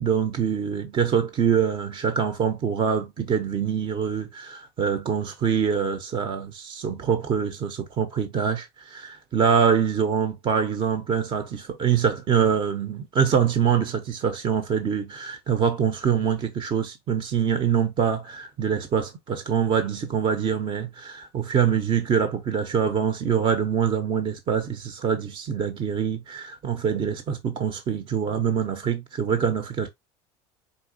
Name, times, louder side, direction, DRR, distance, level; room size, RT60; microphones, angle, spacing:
voice 1, 0.0-29.9, right 7 dB, 40° right, 0.9 m, -24 dB
4.3 x 4.1 x 2.7 m
supercardioid pair, 100°, 14 cm